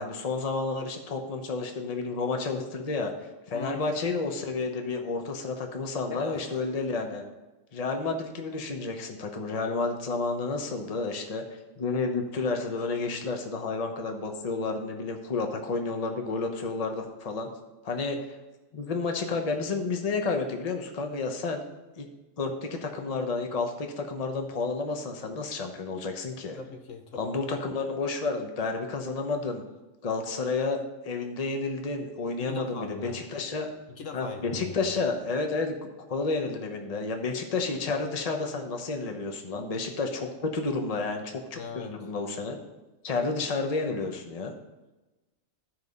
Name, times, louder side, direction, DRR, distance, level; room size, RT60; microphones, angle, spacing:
voice 1, 0.0-3.1 3.5-7.2 7.7-11.4 11.8-17.5 17.8-18.2 18.7-21.6 22.0-22.1 22.4-26.6 27.1-29.6 30.0-33.7 34.1-42.6 43.0-44.5, left 3 dB, 30° left, 4 dB, 1.0 m, -31 dB
voice 2, 3.5-3.9 6.1-6.6 26.6-27.3 32.4-33.2 33.9-34.8 41.5-42.0, left 4 dB, 65° left, 5 dB, 1.2 m, -40 dB
13.0 x 4.8 x 5.4 m, 1.1 s
omnidirectional pair, 1.4 m